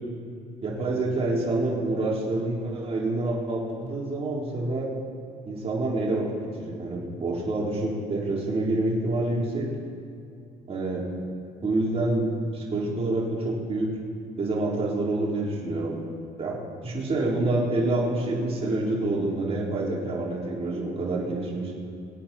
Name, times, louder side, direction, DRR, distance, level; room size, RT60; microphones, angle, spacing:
voice 1, 0.6-4.9 5.5-6.2 6.6-9.7 10.7-11.0 11.6-12.2 12.5-13.9 14.4-15.9 16.4-16.6 16.8-21.7, right 2 dB, 35° right, -4 dB, 3.8 m, -27 dB
24.5 x 8.7 x 4.4 m, 2.5 s
cardioid pair, 110°, 17 cm